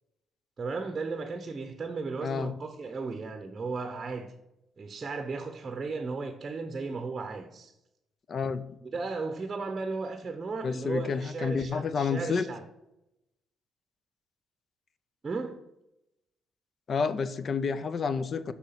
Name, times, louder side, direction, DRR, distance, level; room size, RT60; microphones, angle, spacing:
voice 1, 0.6-4.3 4.8-7.7 8.8-12.6 15.2-15.6, right 4 dB, 35° right, 0.8 m, -35 dB
voice 2, 2.2-2.5 8.3-8.8 10.6-12.5 16.9-18.5, left 5 dB, 50° left, 0.6 m, -30 dB
6.4 x 5.8 x 5.8 m
cardioid pair, 90°, 0 cm